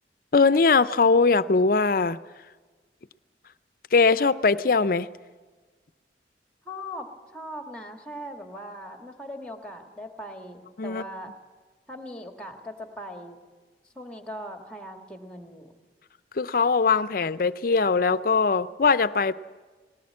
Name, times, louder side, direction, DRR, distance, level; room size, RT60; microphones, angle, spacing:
voice 1, 0.3-2.2 3.9-5.1 10.8-11.0 16.4-19.3, left 4 dB, 55° left, 15 dB, 0.5 m, -21 dB
voice 2, 6.7-11.3 11.9-13.4 14.0-15.7, equal, 5° left, 5 dB, 1.8 m, -39 dB
19.5 x 18.0 x 8.6 m, 1.4 s
head